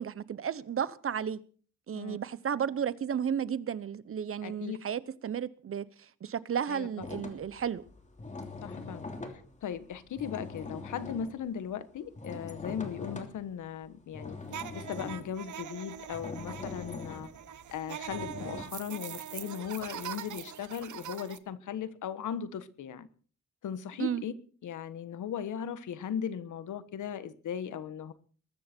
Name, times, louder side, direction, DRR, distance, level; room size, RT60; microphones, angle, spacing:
voice 1, 0.0-1.4 1.9-5.8 6.2-7.8 24.0-24.2, right 8 dB, 45° right, 1.0 m, -33 dB
voice 2, 4.4-4.8 6.7-6.9 8.6-9.1 9.3-14.4 14.7-17.3 17.7-23.1 23.6-24.3 24.6-28.1, left 8 dB, 85° left, 1.4 m, -38 dB
sound 1, 7.0-13.6 14.1-18.6, left 3 dB, 25° left, 3.0 m, -42 dB
sound 2, 14.5-21.4, right 9 dB, 75° right, 1.3 m, -42 dB
21.5 x 13.5 x 4.5 m
cardioid pair, 120°, 30 cm